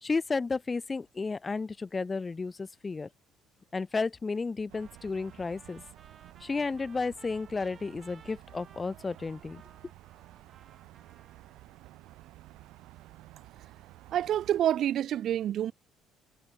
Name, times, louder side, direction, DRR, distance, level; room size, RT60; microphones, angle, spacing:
voice 1, 0.0-3.1 3.7-5.8 6.4-9.6, left 4 dB, 15° left, 0.6 m, -32 dB
Trumpet, 4.7-11.8, right 6 dB, 25° right, 7.6 m, -59 dB
sound 1, 4.7-14.6, right 17 dB, 70° right, 4.0 m, -53 dB
voice 2, 14.1-15.7, right 11 dB, 45° right, 0.5 m, -27 dB
cardioid pair, 170°, 0 cm